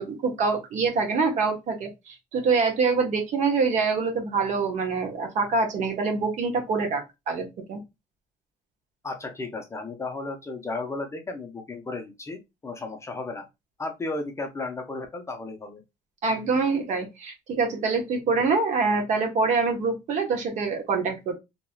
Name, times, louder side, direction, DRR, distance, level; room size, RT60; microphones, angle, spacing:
voice 1, 0.0-7.8 16.2-21.3, right 4 dB, 55° right, 1.1 m, -25 dB
voice 2, 9.0-13.5 13.8-15.8, left 3 dB, 20° left, 0.6 m, -34 dB
2.9 x 2.8 x 2.2 m
cardioid pair, 120°, 15 cm